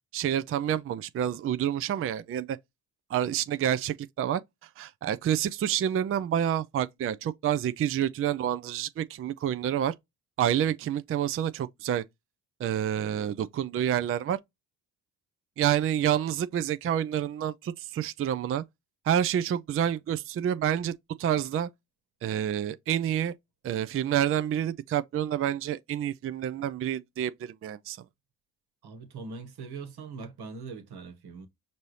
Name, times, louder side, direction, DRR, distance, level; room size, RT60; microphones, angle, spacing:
voice 1, 0.1-2.6 3.1-9.9 10.4-12.0 12.6-14.4 15.6-18.6 19.0-20.9 21.2-21.7 22.2-23.3 23.6-28.0, right 10 dB, 35° right, 0.4 m, -28 dB
voice 2, 28.8-31.5, right 4 dB, 65° right, 1.4 m, -41 dB
5.3 x 2.7 x 3.1 m
supercardioid pair, 60°, 42 cm